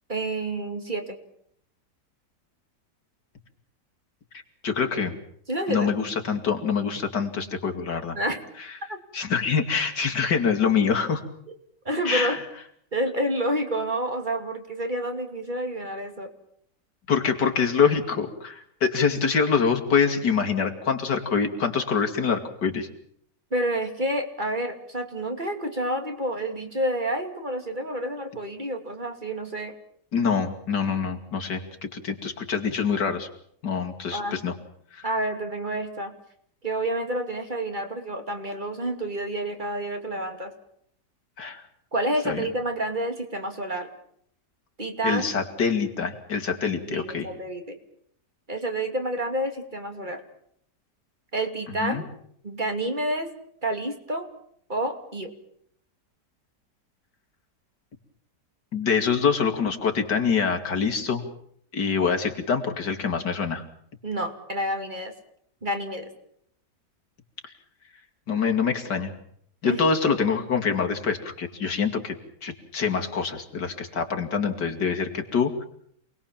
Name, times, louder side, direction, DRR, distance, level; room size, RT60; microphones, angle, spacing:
voice 1, 0.1-1.2 5.5-5.9 8.2-8.4 8.9-9.0 11.8-12.4 12.9-16.3 23.5-29.7 34.1-34.4 35.0-36.1 36.6-40.5 41.9-43.9 44.8-45.3 46.9-47.8 48.5-50.2 51.3-52.1 52.4-53.3 53.6-54.3 54.7-55.3 64.0-65.1 65.6-66.1 69.6-69.8, right 1 dB, 25° right, 6 dB, 2.9 m, -29 dB
voice 2, 4.6-5.2 5.7-8.2 9.1-11.2 12.1-12.4 17.1-22.9 30.1-33.3 33.6-34.5 34.9-35.0 41.4-41.6 42.2-42.4 45.0-47.3 51.8-52.0 58.7-61.2 61.7-63.6 68.3-69.1 69.6-72.1 72.4-75.7, left 6 dB, 85° left, 4 dB, 3.2 m, -25 dB
28.0 x 20.5 x 7.3 m, 0.67 s
omnidirectional pair, 1.8 m